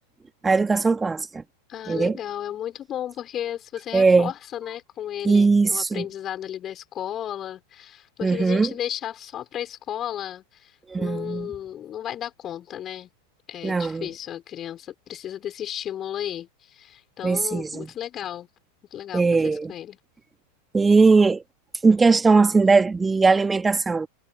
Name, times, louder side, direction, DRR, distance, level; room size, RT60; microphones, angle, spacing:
voice 1, 0.4-1.4 1.9-2.2 3.9-4.3 5.2-6.0 8.2-8.7 10.9-11.5 13.6-14.1 17.2-17.9 19.1-19.7 20.7-21.4 21.8-24.1, right 4 dB, 10° right, 3.0 m, -19 dB
voice 2, 1.7-13.1 13.5-18.5 18.9-20.0, left 11 dB, 30° left, 6.3 m, -34 dB
figure-of-eight pair, 90°, 0 cm